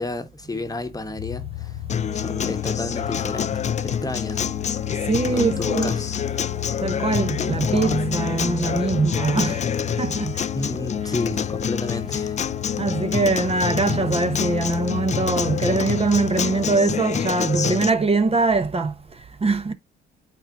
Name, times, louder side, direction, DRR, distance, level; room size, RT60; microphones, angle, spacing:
voice 1, 0.0-1.8 2.1-4.5 5.3-6.1 10.5-12.4, left 2 dB, 20° left, 1.2 m, -31 dB
sound 1, 1.2-16.8, left 19 dB, 90° left, 0.4 m, -33 dB
Acoustic guitar, 1.9-17.9, left 7 dB, 35° left, 0.5 m, -27 dB
voice 2, 5.1-6.0 6.8-10.5 11.0-11.1 12.8-19.7, right 3 dB, 30° right, 1.0 m, -23 dB
sound 2, 7.1-10.5, right 3 dB, 15° right, 1.5 m, -35 dB
8.8 x 4.3 x 2.5 m
cardioid pair, 90°, 20 cm